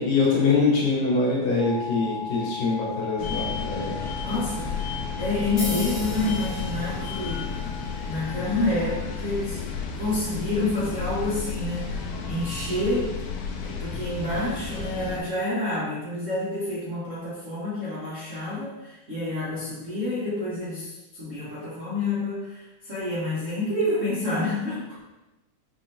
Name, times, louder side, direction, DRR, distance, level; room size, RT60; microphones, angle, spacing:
voice 1, 0.0-4.0, left 4 dB, 65° left, -5 dB, 1.9 m, -23 dB
sound 1, 1.6-8.6, left 5 dB, 50° right, 0.9 m, -38 dB
sound 2, 3.2-15.2, left 5 dB, 85° left, 1.4 m, -33 dB
voice 2, 4.2-4.9 5.2-7.5 8.0-9.6 10.0-13.2 13.6-25.0, left 2 dB, 80° right, -11 dB, 0.6 m, -28 dB
sound 3, 5.6-13.7, left 1 dB, 50° left, 2.3 m, -41 dB
5.5 x 2.7 x 2.7 m, 1.0 s
omnidirectional pair, 3.4 m